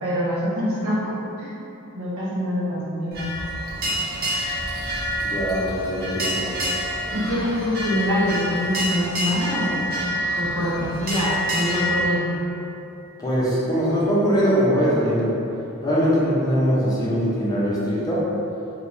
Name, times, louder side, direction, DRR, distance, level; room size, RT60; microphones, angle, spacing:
voice 1, 0.0-1.5 1.9-3.3 7.1-9.9 10.4-12.4, equal, 70° right, -7 dB, 0.8 m, -25 dB
sound 1, 3.1-12.0, equal, 45° right, 0.5 m, -27 dB
voice 2, 5.2-6.5 13.2-15.4 15.8-18.3, equal, 15° left, -8 dB, 0.6 m, -21 dB
3.4 x 2.8 x 2.6 m, 2.8 s
head